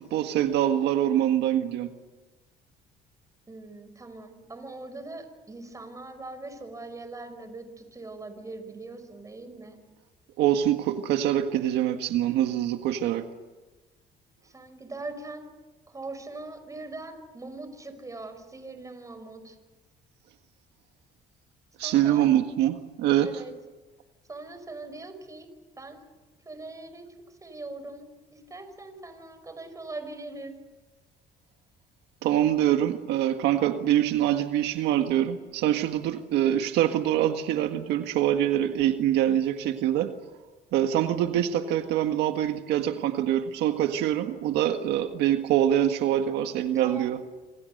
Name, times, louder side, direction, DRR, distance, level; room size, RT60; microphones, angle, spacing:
voice 1, 0.0-1.9 10.4-13.3 21.8-23.3 32.2-40.1 40.7-47.2, right 11 dB, 85° right, 6 dB, 1.7 m, -24 dB
voice 2, 3.5-9.8 14.4-15.5 15.9-19.6 21.8-22.3 23.2-23.5 24.3-25.5 25.8-26.0 26.4-27.1 27.4-30.6 44.8-45.2 46.7-47.1, right 2 dB, 20° right, 8 dB, 5.2 m, -41 dB
27.0 x 26.0 x 6.7 m, 1.2 s
cardioid pair, 110°, 17 cm